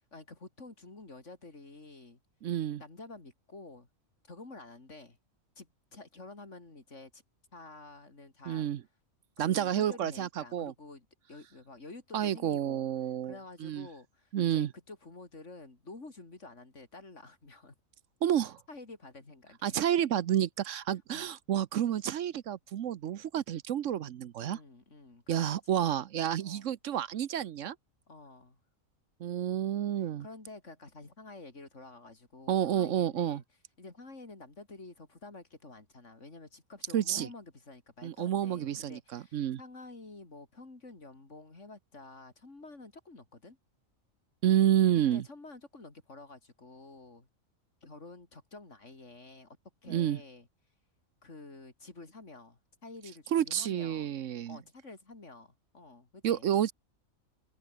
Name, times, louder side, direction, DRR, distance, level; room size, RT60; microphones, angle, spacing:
voice 1, 0.1-2.2 2.8-3.9 4.3-5.2 5.6-7.2 7.5-8.7 9.4-12.9 13.2-17.7 18.7-19.8 21.1-21.3 24.4-25.9 26.4-26.7 28.1-28.6 30.0-33.4 33.8-43.6 45.0-47.3 47.8-49.6 49.8-50.5 51.2-54.1 54.5-56.5, left 3 dB, 60° left, 3.9 m, -50 dB
voice 2, 2.4-2.8 8.5-8.8 9.4-10.7 12.1-13.9 14.3-14.7 18.2-18.6 19.6-24.6 25.3-27.8 29.2-30.3 32.5-33.4 36.9-37.3 38.0-39.6 44.4-45.2 49.9-50.2 53.3-54.6 56.2-56.7, right 10 dB, 70° right, 1.1 m, -30 dB
omnidirectional pair, 1.4 m